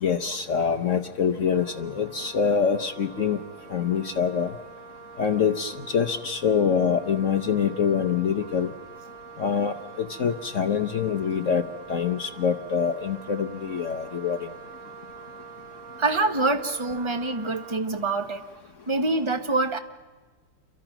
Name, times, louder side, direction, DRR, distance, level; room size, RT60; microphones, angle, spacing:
voice 1, 0.0-3.4 3.7-4.5 5.2-8.7 9.4-11.6 11.9-14.4, left 7 dB, 60° left, 8 dB, 0.8 m, -25 dB
Wind instrument woodwind instrument, 1.5-17.8, right 6 dB, 35° right, 2.0 m, -45 dB
voice 2, 16.0-18.4 18.9-19.8, right 3 dB, 20° right, 7 dB, 1.0 m, -25 dB
29.0 x 23.5 x 6.0 m, 1.4 s
omnidirectional pair, 2.4 m